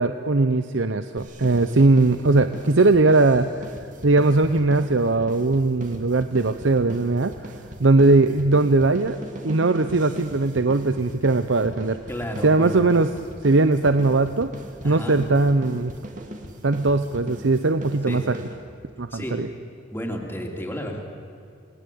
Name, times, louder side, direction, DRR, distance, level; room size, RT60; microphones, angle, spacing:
voice 1, 0.0-3.5 4.0-7.5 7.8-9.2 9.4-12.0 12.4-13.1 13.4-14.5 14.8-15.9 16.6-18.4 19.0-19.5, right 3 dB, 80° right, 10 dB, 0.8 m, -19 dB
sound 1, 1.2-18.9, right 1 dB, 40° right, 2.6 m, -40 dB
voice 2, 12.1-12.8 14.8-15.2 18.1-18.3 19.1-19.4 19.9-21.0, equal, 10° left, 1 dB, 3.2 m, -32 dB
28.5 x 19.5 x 8.6 m, 2.5 s
head